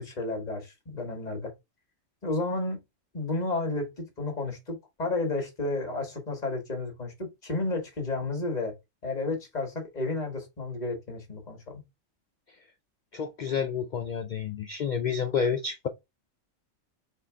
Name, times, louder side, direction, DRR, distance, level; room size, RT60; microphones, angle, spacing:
voice 1, 0.0-1.5 2.2-2.8 3.1-8.7 9.0-11.8, left 2 dB, 35° left, 1.5 m, -32 dB
voice 2, 13.1-15.9, left 6 dB, 70° left, 0.4 m, -29 dB
4.3 x 2.8 x 3.4 m
omnidirectional pair, 1.3 m